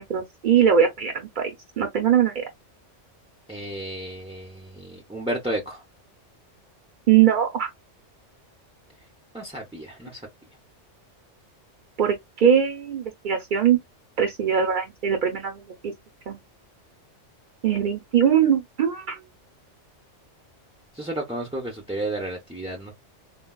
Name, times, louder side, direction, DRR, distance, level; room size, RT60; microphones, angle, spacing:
voice 1, 0.0-1.5 1.8-2.4 7.1-7.7 12.0-13.8 14.2-15.9 16.3-16.4 17.6-19.2, right 8 dB, 55° right, 0.6 m, -21 dB
voice 2, 3.5-5.8 9.3-10.2 20.9-22.9, right 1 dB, 10° right, 0.4 m, -32 dB
3.9 x 2.2 x 2.2 m
omnidirectional pair, 1.2 m